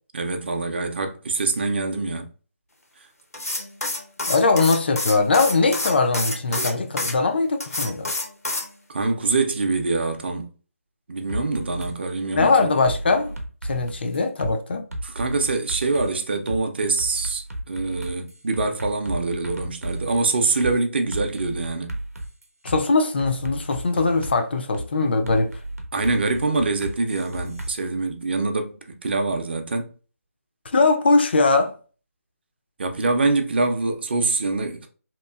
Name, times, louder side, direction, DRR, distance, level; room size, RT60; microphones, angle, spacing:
voice 1, 0.1-2.3 6.5-6.7 8.9-10.5 11.1-12.7 15.0-22.0 25.9-29.9 32.8-34.9, right 3 dB, 45° right, 0.5 m, -25 dB
sound 1, 3.3-7.1 7.6-8.7, left 2 dB, 85° left, 0.8 m, -28 dB
voice 2, 4.3-8.1 12.3-14.9 22.6-25.6 30.7-31.7, left 3 dB, 45° left, 0.3 m, -21 dB
sound 2, 11.3-11.9 12.3-12.5 12.8-14.5 14.9-16.1 16.5-16.6 17.0-20.2 20.6-20.7 21.1-22.8 23.2-24.4 24.7-24.9 25.3-27.7, right 1 dB, 85° right, 0.7 m, -33 dB
2.9 x 2.4 x 2.2 m
figure-of-eight pair, 150°, 8 cm